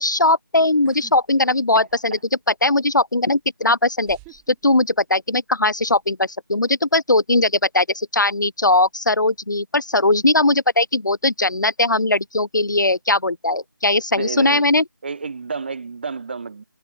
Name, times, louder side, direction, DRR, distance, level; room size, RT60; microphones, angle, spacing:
voice 1, 0.0-2.2 2.6-4.2 4.6-14.8, left 2 dB, 65° left, 1.3 m, -19 dB
sound 1, 0.8-1.2 1.5-2.2 3.2-3.3 4.0-5.4 5.7-6.1, right 40 dB or more, 10° right, 2.4 m, -47 dB
voice 2, 14.1-14.7 15.0-16.6, right 4 dB, 30° right, 5.0 m, -30 dB
figure-of-eight pair, 165°, 11 cm